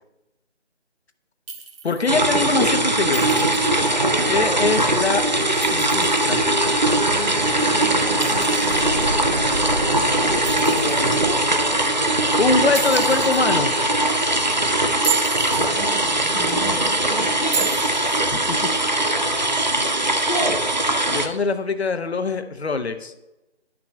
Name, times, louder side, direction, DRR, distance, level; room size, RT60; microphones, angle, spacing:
Chink clink, 1.5-2.1 3.1-3.8 5.4-6.3 8.2-9.1 10.4-11.2 12.7-13.4 14.9-15.7 17.5-18.2, right 6 dB, 55° right, 1.8 m, -31 dB
voice 1, 1.8-3.5 4.3-5.2 5.6-6.4 12.4-13.7 18.3-18.6 21.1-23.1, left 3 dB, 65° left, 8 dB, 0.8 m, -23 dB
sound 1, 2.1-21.3, right 1 dB, 40° right, 0.5 m, -21 dB
sound 2, 3.6-12.6, equal, 85° right, 2.7 m, -32 dB
voice 2, 3.8-4.6 7.2-12.7 15.5-17.7 20.2-20.6, right 1 dB, 15° right, -8 dB, 1.9 m, -32 dB
11.5 x 6.0 x 2.2 m, 0.99 s
figure-of-eight pair, 170°, 35 cm